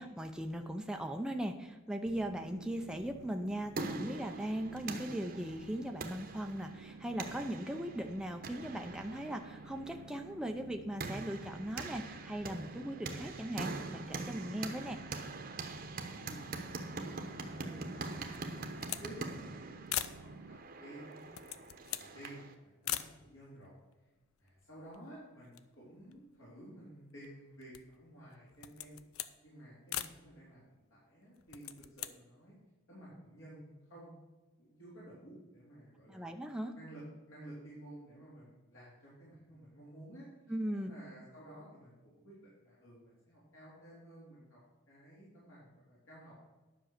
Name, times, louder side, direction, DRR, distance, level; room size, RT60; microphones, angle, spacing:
voice 1, 0.0-15.0 36.1-36.8 40.5-40.9, equal, 5° right, 4 dB, 0.5 m, -39 dB
sound 1, 2.0-20.6, right 4 dB, 90° right, 0.6 m, -53 dB
sound 2, 3.3-22.5, right 3 dB, 45° right, 1.0 m, -44 dB
voice 2, 16.1-17.9 18.4-21.6 21.9-23.8 24.4-29.0 29.4-32.6 32.9-34.2 34.6-36.3 36.7-40.3 40.7-44.6 44.9-46.4, right 1 dB, 70° left, -8 dB, 3.9 m, -53 dB
sound 3, 18.3-19.1 19.4-19.5 19.9-20.2 21.1-22.1 22.8-23.1 23.9-24.0 24.2-25.1 25.4-26.7 27.2-28.0 28.5-29.4 29.9-30.2 31.4-32.1, left 12 dB, 90° left, 0.5 m, -41 dB
10.5 x 6.2 x 6.5 m, 1.2 s
head